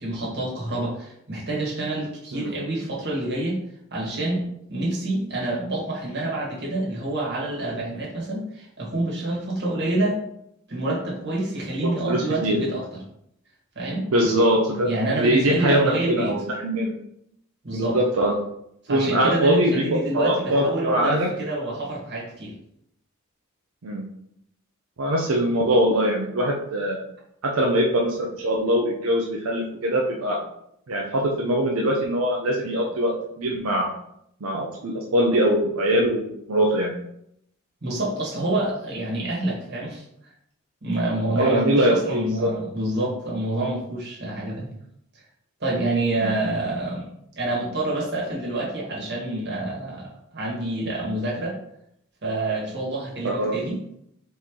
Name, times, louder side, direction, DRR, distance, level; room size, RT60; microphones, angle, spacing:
voice 1, 0.0-3.6 3.9-10.2 10.7-12.9 13.7-14.1 14.8-16.4 17.6-18.0 18.8-22.5 37.8-40.0 40.8-44.7 45.6-47.1 47.3-51.6 52.2-53.8, right 2 dB, 55° right, -4 dB, 1.6 m, -27 dB
voice 2, 11.8-12.6 14.1-14.9 15.2-16.9 17.7-18.3 18.9-21.3 23.8-24.0 25.0-27.0 27.4-30.4 30.9-33.9 34.4-36.9 41.3-42.5 46.2-46.3 53.2-53.5, equal, 85° right, -1 dB, 0.6 m, -22 dB
4.1 x 3.1 x 3.6 m, 0.75 s
head